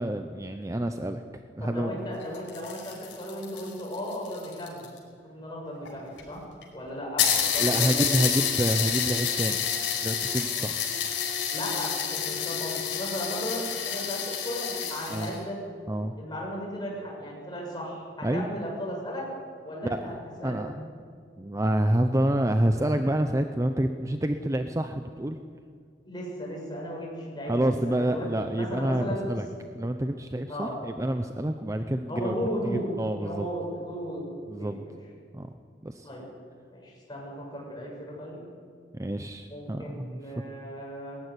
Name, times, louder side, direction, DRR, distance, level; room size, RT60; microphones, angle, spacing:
voice 1, 0.0-1.9 7.6-9.6 10.0-10.8 15.1-15.3 15.9-16.1 18.2-18.5 19.8-20.1 20.4-20.9 21.4-25.4 27.5-29.5 29.7-32.4 32.6-33.5 34.5-34.8 35.3-35.5 35.8-36.1 38.9-40.2, right 1 dB, 15° right, 7 dB, 0.6 m, -28 dB
voice 2, 1.6-4.9 5.2-6.4 6.7-8.2 11.5-15.6 16.2-19.3 19.6-20.7 26.1-29.3 30.5-30.8 32.1-32.9 33.2-34.3 34.6-35.0 36.0-36.3 36.7-38.4 39.5-41.2, equal, 25° left, -3 dB, 7.2 m, -35 dB
sound 1, 2.2-5.0 5.9-6.0 6.2-6.3 6.6-6.7 7.2-15.4, left 8 dB, 85° left, 5.1 m, -29 dB
20.0 x 15.0 x 9.9 m, 2.1 s
head